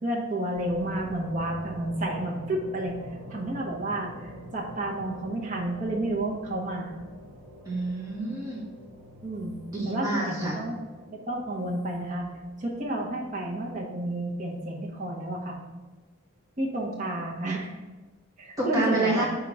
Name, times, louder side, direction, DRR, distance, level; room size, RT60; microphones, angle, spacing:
voice 1, 0.0-2.9 3.3-7.0 9.2-9.5 9.8-10.8 11.1-12.3 12.6-15.6 16.6-17.7 18.4-19.2, right 1 dB, 35° right, -1 dB, 1.0 m, -31 dB
sound 1, 0.5-14.9, right 1 dB, 80° right, 1.1 m, -46 dB
voice 2, 7.6-8.6 9.7-10.6 18.6-19.3, right 2 dB, 15° right, -6 dB, 1.7 m, -28 dB
4.8 x 3.7 x 5.4 m, 1.2 s
head